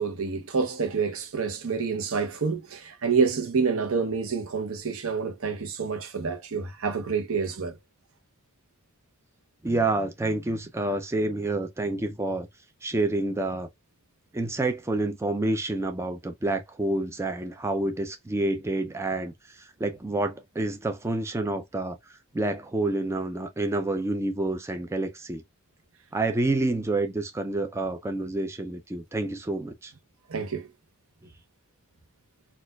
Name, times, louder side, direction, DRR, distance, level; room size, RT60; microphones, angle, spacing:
voice 1, 0.0-7.8 30.3-30.7, right 5 dB, 65° right, 0.8 m, -28 dB
voice 2, 9.6-12.5 12.8-13.7 14.3-22.0 22.3-25.4 26.1-29.9, right 2 dB, 10° right, 0.4 m, -28 dB
4.3 x 2.4 x 2.2 m
head